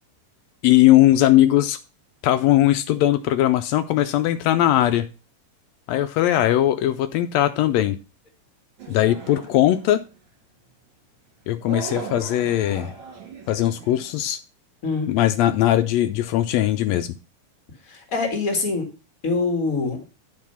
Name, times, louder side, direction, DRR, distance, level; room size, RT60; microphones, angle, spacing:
voice 1, 0.6-1.8 2.2-5.1 5.9-8.0 8.9-10.0 11.5-12.9 13.5-14.4 15.1-17.2, left 13 dB, 90° left, 10 dB, 1.5 m, -19 dB
sound 1, 8.8-10.0 11.6-14.2, right 5 dB, 45° right, 2.2 m, -37 dB
voice 2, 17.9-18.9 19.2-20.0, left 3 dB, 30° left, 3 dB, 2.0 m, -24 dB
9.7 x 4.5 x 5.5 m, 0.32 s
omnidirectional pair, 3.6 m